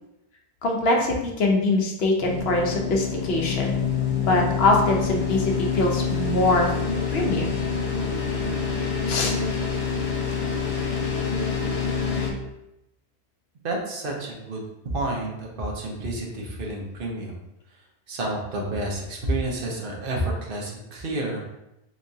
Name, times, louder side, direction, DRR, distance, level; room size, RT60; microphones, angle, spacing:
voice 1, 0.6-3.8 4.2-6.7 7.1-7.6 9.1-10.4, left 2 dB, 70° left, 1 dB, 0.9 m, -23 dB
sound 1, 2.2-12.3, left 6 dB, 40° left, 0.6 m, -26 dB
voice 2, 13.6-14.6 14.9-17.4 18.1-21.6, right 1 dB, 60° right, -1 dB, 0.9 m, -30 dB
3.5 x 3.0 x 2.6 m, 0.88 s
omnidirectional pair, 1.1 m